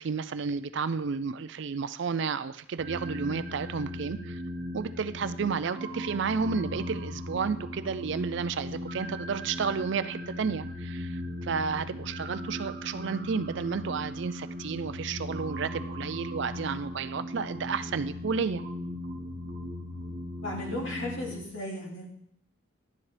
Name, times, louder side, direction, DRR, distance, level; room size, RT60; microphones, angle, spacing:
voice 1, 0.0-4.4 4.7-18.6, right 5 dB, 55° right, 13 dB, 0.4 m, -32 dB
sound 1, 2.8-21.4, left 1 dB, 40° right, 0.9 m, -38 dB
voice 2, 20.4-22.1, left 1 dB, 60° left, -2 dB, 2.7 m, -35 dB
11.5 x 9.9 x 3.3 m, 0.68 s
head